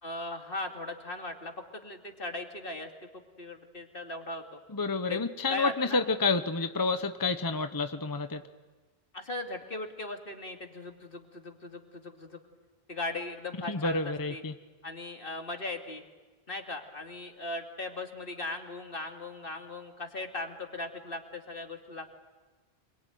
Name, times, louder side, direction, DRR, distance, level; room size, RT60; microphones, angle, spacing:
voice 1, 0.0-4.6 5.0-6.0 9.1-12.4 12.9-14.4 14.8-16.0 16.5-22.2, left 2 dB, 60° left, 3 dB, 2.6 m, -38 dB
voice 2, 4.7-8.4 13.7-14.5, left 3 dB, 20° left, 9 dB, 0.8 m, -29 dB
26.5 x 22.5 x 9.2 m, 1.3 s
omnidirectional pair, 1.1 m